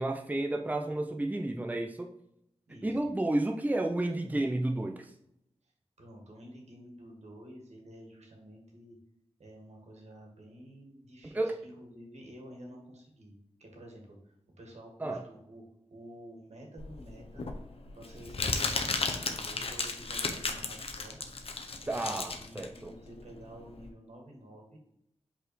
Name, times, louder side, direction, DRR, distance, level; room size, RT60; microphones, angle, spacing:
voice 1, 0.0-2.1 2.8-5.1 11.2-11.6 15.0-15.2 21.9-22.9, right 1 dB, 15° right, 3 dB, 0.6 m, -31 dB
voice 2, 2.7-3.0 5.6-5.7 6.0-9.0 9.4-13.3 13.6-15.6 15.9-17.5 17.9-21.2 21.8-24.8, equal, 85° right, 0 dB, 1.9 m, -50 dB
Crumpling crinkling, 16.8-23.9, left 3 dB, 60° left, 0.8 m, -34 dB
5.4 x 4.2 x 4.5 m, 0.79 s
wide cardioid pair, 100°, 11 cm